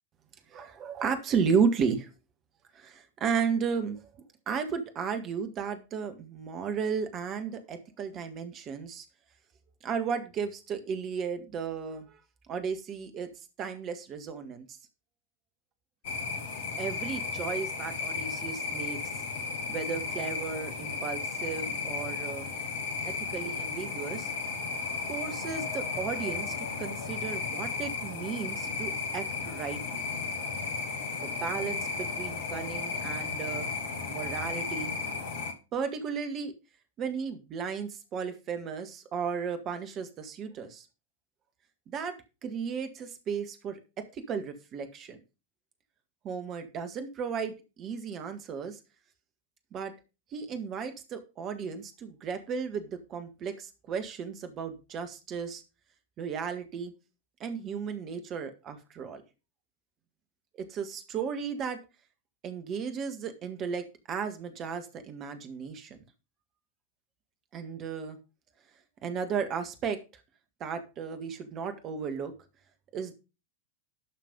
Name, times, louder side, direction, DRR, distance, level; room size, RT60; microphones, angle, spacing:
voice 1, 0.5-2.1 2.7-4.0 4.5-9.1 9.8-12.2 12.5-13.3 13.6-14.7 16.8-19.0 19.7-22.5 23.0-24.3 25.1-30.0 31.2-33.7 34.1-34.9 35.7-36.5 37.0-40.9 41.9-42.2 42.4-45.2 46.2-48.8 49.7-49.9 50.3-55.6 56.2-56.9 57.4-59.2 60.5-61.8 62.4-66.0 67.5-68.2 69.0-70.0 70.6-72.3 72.9-73.1, right 6 dB, 30° right, 8 dB, 1.8 m, -34 dB
sound 1, 16.0-35.5, left 4 dB, 55° left, 1.9 m, -34 dB
12.0 x 5.9 x 5.3 m, 0.30 s
figure-of-eight pair, 90°, 0 cm